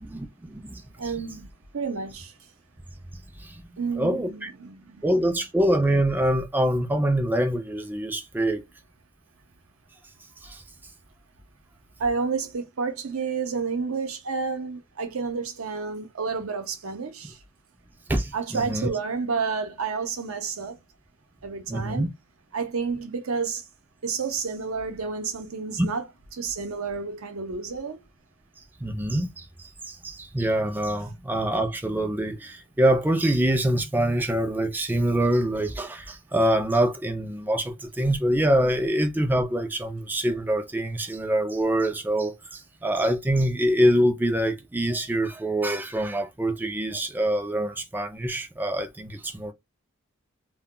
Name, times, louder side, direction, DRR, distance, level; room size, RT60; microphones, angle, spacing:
voice 1, 0.0-0.8 3.4-3.5 4.0-4.5 5.0-8.6 10.4-10.6 18.1-18.9 21.7-22.1 25.8-25.9 28.8-29.4 29.9-49.5, right 1 dB, 10° right, 0.4 m, -25 dB
voice 2, 1.0-1.5 1.7-2.4 3.8-5.3 12.0-17.4 18.3-20.8 21.4-22.1 22.5-23.6 24.0-28.0, right 5 dB, 75° right, 0.7 m, -30 dB
2.2 x 2.2 x 3.6 m
head